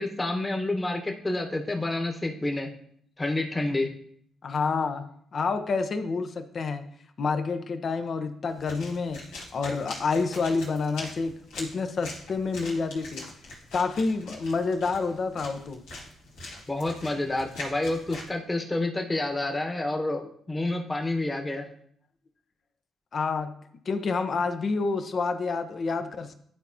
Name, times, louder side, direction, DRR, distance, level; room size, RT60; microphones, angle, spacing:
voice 1, 0.0-2.7 3.2-3.9 16.7-21.7, left 2 dB, 20° left, 3 dB, 1.2 m, -29 dB
voice 2, 4.4-6.9 7.2-9.2 9.5-13.3 13.7-15.8 23.1-23.5 23.9-26.3, left 4 dB, 55° left, 8 dB, 0.8 m, -28 dB
sound 1, 8.5-18.3, left 2 dB, 85° left, 1.7 m, -43 dB
11.5 x 4.2 x 2.8 m, 0.64 s
supercardioid pair, 60°, 0 cm